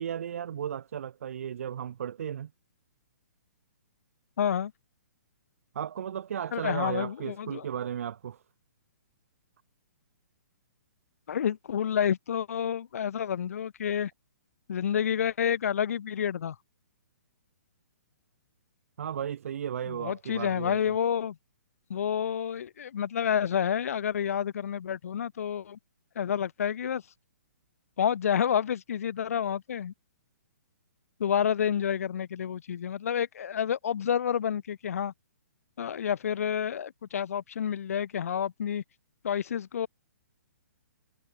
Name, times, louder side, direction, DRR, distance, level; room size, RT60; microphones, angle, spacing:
voice 1, 0.0-2.5 5.7-8.4 19.0-20.9, right 9 dB, 55° right, 5.9 m, -35 dB
voice 2, 4.4-4.7 6.5-7.7 11.3-14.1 14.7-16.6 19.9-21.4 21.9-25.8 26.1-27.0 28.0-29.9 31.2-35.1 35.8-38.8 39.2-39.9, left 8 dB, 60° left, 1.4 m, -29 dB
hypercardioid pair, 165°, 9 cm